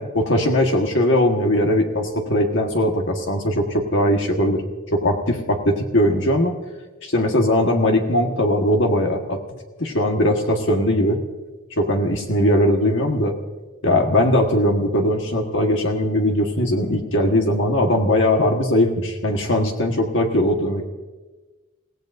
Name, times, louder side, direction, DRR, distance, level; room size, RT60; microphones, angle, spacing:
voice 1, 0.0-4.6 4.9-6.6 7.0-9.4 9.8-11.2 11.8-13.3 13.8-20.8, left 1 dB, 55° left, 2 dB, 1.5 m, -20 dB
30.0 x 17.0 x 2.6 m, 1.2 s
head